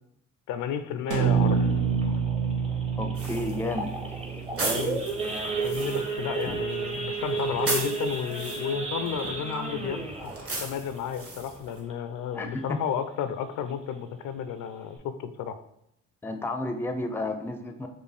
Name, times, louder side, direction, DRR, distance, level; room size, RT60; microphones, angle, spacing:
voice 1, 0.5-1.6 4.7-5.0 5.6-10.3 10.6-15.6, left 8 dB, 80° left, 10 dB, 0.5 m, -32 dB
Idling / Accelerating revving vroom / Sawing, 1.1-12.2 12.6-12.8 13.0-13.1 13.6-13.9 14.3-14.4 14.6-15.0, right 4 dB, 20° right, 0.7 m, -33 dB
sound 1, 1.1-5.3, right 6 dB, 85° right, 0.8 m, -27 dB
voice 2, 3.0-3.9 12.3-12.8 16.2-17.9, left 2 dB, 10° left, 6 dB, 0.4 m, -31 dB
sound 2, 3.2-11.8, right 2 dB, 50° right, 1.2 m, -37 dB
4.3 x 2.6 x 3.3 m, 0.77 s
cardioid pair, 90°, 30 cm